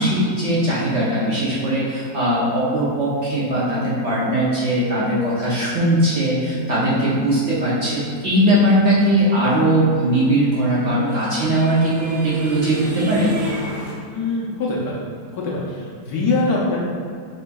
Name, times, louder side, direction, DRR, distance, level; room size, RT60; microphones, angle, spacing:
voice 1, 0.0-13.3, right 1 dB, 55° right, -8 dB, 0.9 m, -19 dB
sound 1, 10.1-13.9, left 1 dB, 85° right, 2.2 m, -33 dB
voice 2, 14.1-15.0 15.3-16.8, left 3 dB, 65° left, -4 dB, 1.2 m, -23 dB
5.2 x 3.6 x 2.2 m, 2.2 s
omnidirectional pair, 1.9 m